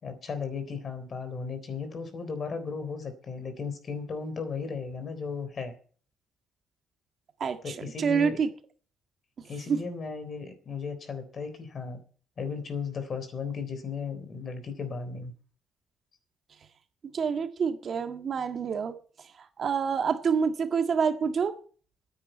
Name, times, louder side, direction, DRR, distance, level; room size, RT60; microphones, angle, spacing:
voice 1, 0.0-5.7 7.6-8.4 9.5-12.0 12.4-15.3, left 5 dB, 50° left, 9 dB, 3.6 m, -35 dB
voice 2, 7.4-8.5 9.7-9.8 17.1-18.9 19.6-21.5, right 6 dB, 50° right, 7 dB, 1.7 m, -27 dB
9.8 x 9.1 x 9.1 m, 0.43 s
cardioid pair, 90°, 0 cm